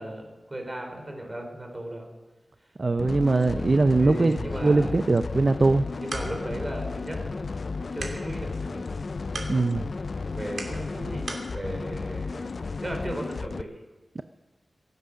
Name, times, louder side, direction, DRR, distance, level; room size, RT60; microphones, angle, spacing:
voice 1, 0.0-2.1 4.0-5.0 6.0-7.5 7.7-8.8 10.3-11.3 11.5-12.5 12.8-13.8, right 1 dB, 25° right, 3 dB, 3.6 m, -36 dB
voice 2, 2.8-4.4 4.6-5.9 9.5-9.8 14.2-14.3, right 3 dB, 40° right, 10 dB, 0.5 m, -21 dB
sound 1, 3.0-13.6, left 4 dB, 55° left, 0.4 m, -33 dB
sound 2, 5.7-11.5, right 3 dB, 65° right, 2.8 m, -42 dB
23.5 x 8.1 x 6.3 m, 1.2 s
wide cardioid pair, 105°, 0 cm